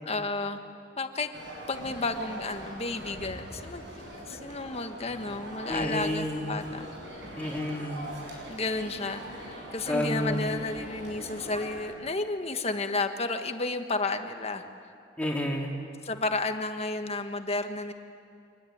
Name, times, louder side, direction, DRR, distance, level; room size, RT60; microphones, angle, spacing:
voice 1, 0.0-0.6 1.0-1.3 1.7-6.9 8.5-14.6 16.0-17.9, left 3 dB, 35° left, 7 dB, 1.5 m, -32 dB
sound 1, 1.3-11.9, right 1 dB, 90° right, 7.2 m, -42 dB
voice 2, 5.7-6.6 7.4-8.1 9.9-10.4 15.2-15.7, left 1 dB, 10° left, -2 dB, 3.6 m, -30 dB
25.5 x 21.0 x 9.4 m, 2.6 s
head